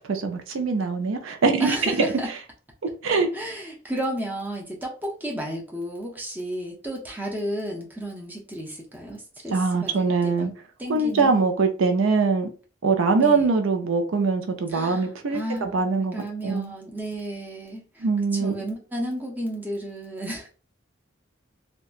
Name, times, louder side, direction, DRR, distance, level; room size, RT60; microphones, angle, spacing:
voice 1, 0.0-2.1 3.0-3.3 9.5-10.5 10.9-12.5 12.8-16.7 18.0-18.5, right 4 dB, 75° right, 6 dB, 0.5 m, -23 dB
voice 2, 1.6-2.3 3.3-10.5 10.8-11.3 13.2-13.5 14.7-18.1 18.3-20.5, right 1 dB, 10° right, -1 dB, 0.5 m, -32 dB
2.8 x 2.2 x 2.4 m, 0.37 s
head